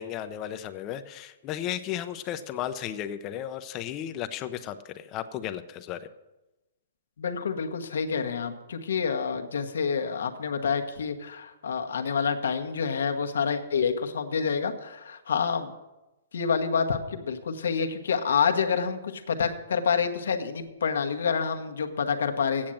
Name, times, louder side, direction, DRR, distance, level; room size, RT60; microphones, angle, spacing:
voice 1, 0.0-6.1, left 11 dB, 30° left, 11 dB, 0.6 m, -34 dB
voice 2, 7.2-15.7 16.3-22.7, left 6 dB, 80° left, 6 dB, 1.1 m, -28 dB
8.7 x 7.4 x 7.6 m, 1.0 s
hypercardioid pair, 145°, 0 cm